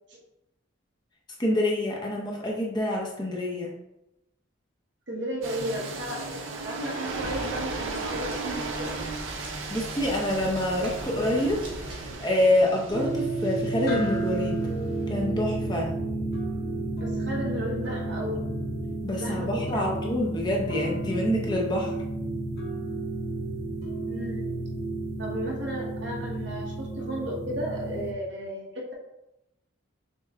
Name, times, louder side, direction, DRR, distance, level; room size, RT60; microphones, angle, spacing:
voice 1, 1.4-3.8 9.7-11.6 11.9-14.6 15.1-15.9 19.0-21.9, left 1 dB, 20° left, -1 dB, 0.7 m, -26 dB
voice 2, 5.1-9.0 17.0-18.4 19.1-19.9 24.1-24.6 25.2-28.9, equal, 65° right, -2 dB, 1.1 m, -34 dB
sound 1, 5.4-15.3, right 3 dB, 85° right, 0.8 m, -36 dB
sound 2, 7.1-12.1, right 1 dB, 40° right, 1.6 m, -42 dB
sound 3, 12.9-28.1, right 2 dB, 50° left, 1.1 m, -31 dB
6.5 x 2.2 x 3.5 m, 0.89 s
head